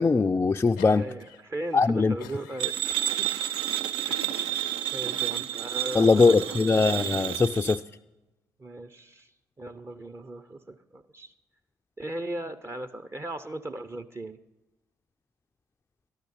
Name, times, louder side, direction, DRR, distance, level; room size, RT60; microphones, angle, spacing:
voice 1, 0.0-1.0 1.7-2.2 5.9-7.8, left 4 dB, 25° left, 7 dB, 0.3 m, -21 dB
sound 1, 0.6-1.4 1.7-3.1 3.7-4.4 5.1-5.5, left 5 dB, 85° left, 0.5 m, -46 dB
voice 2, 0.9-2.8 3.2-3.3 4.1-4.5 4.9-6.7 8.6-9.3 9.6-11.3 12.0-14.4, right 1 dB, 30° right, 10 dB, 0.7 m, -37 dB
sound 2, 2.6-7.8, right 12 dB, 65° right, 0.5 m, -30 dB
13.0 x 12.0 x 4.2 m, 1.0 s
hypercardioid pair, 40°, 9 cm